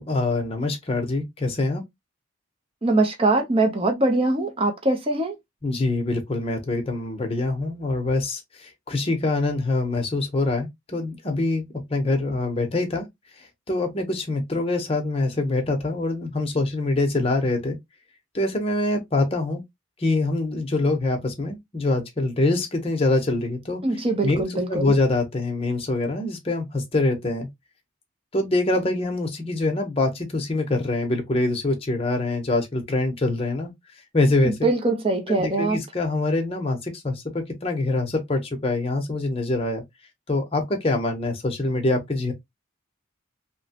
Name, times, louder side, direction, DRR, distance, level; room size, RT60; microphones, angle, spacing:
voice 1, 0.0-1.8 5.6-11.6 11.9-13.1 13.7-17.8 18.3-19.6 20.0-23.8 24.2-27.5 28.3-33.7 34.1-34.7 35.3-39.8 40.3-42.3, left 2 dB, 30° left, 0.7 m, -24 dB
voice 2, 2.8-5.4 23.8-24.9 34.4-35.8, right 2 dB, 25° right, 0.6 m, -22 dB
3.0 x 2.1 x 2.8 m
head